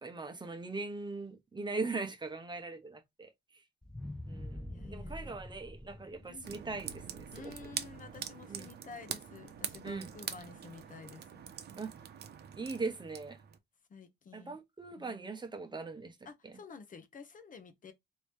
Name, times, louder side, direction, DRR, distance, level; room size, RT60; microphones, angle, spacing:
voice 1, 0.0-3.6 4.3-7.7 8.5-8.7 9.8-10.1 11.8-11.9 12.5-13.4 14.3-16.2 16.4-16.5, right 3 dB, 20° right, 0.9 m, -40 dB
sound 1, 3.8-8.1 8.6-8.7, left 1 dB, 5° left, 0.3 m, -46 dB
voice 2, 4.7-5.4 6.2-6.5 7.3-11.5 13.9-14.6 15.0-15.2 16.3-17.9, left 5 dB, 40° left, 0.7 m, -51 dB
sound 2, 6.4-13.6, right 8 dB, 55° right, 0.7 m, -44 dB
3.1 x 2.7 x 3.2 m
cardioid pair, 90°, 20 cm